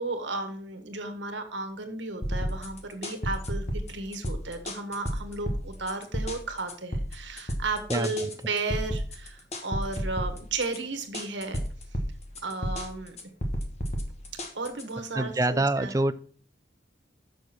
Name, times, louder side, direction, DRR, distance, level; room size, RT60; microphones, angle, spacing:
voice 1, 0.0-11.6 12.4-13.2 14.5-15.9, right 3 dB, 75° right, 7 dB, 1.5 m, -34 dB
sound 1, 2.2-15.1, equal, 35° left, 1.3 m, -33 dB
voice 2, 7.9-8.3 15.1-16.1, right 2 dB, 20° right, 12 dB, 0.4 m, -26 dB
7.0 x 6.4 x 5.9 m, 0.44 s
head